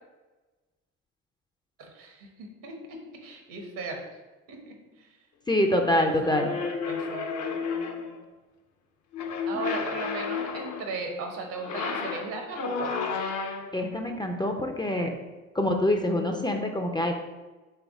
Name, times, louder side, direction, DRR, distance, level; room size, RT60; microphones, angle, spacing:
voice 1, 1.8-4.0 4.5-5.1 5.9-7.3 9.5-13.3, right 3 dB, 65° right, 3 dB, 1.0 m, -37 dB
voice 2, 5.5-6.5 9.5-9.6 13.7-15.1 15.5-17.1, left 1 dB, 15° left, 3 dB, 0.4 m, -25 dB
sound 1, 6.3-8.2 9.1-10.9 11.5-13.8, left 5 dB, 50° left, 0.7 m, -32 dB
3.5 x 3.4 x 3.5 m, 1.2 s
hypercardioid pair, 55°, 36 cm